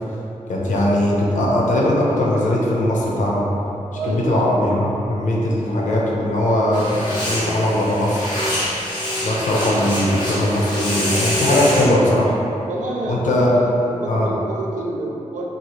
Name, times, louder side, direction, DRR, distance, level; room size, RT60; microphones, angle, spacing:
voice 1, 0.5-3.4 4.0-8.3 9.2-12.3 13.1-13.6 14.1-14.3, left 1 dB, 80° left, -4 dB, 0.5 m, -19 dB
voice 2, 3.9-4.5 12.6-15.5, right 2 dB, 80° right, -1 dB, 0.4 m, -28 dB
sound 1, 6.7-11.9, equal, 35° left, 0.9 m, -25 dB
2.8 x 2.4 x 2.9 m, 2.9 s
wide cardioid pair, 155°, 13 cm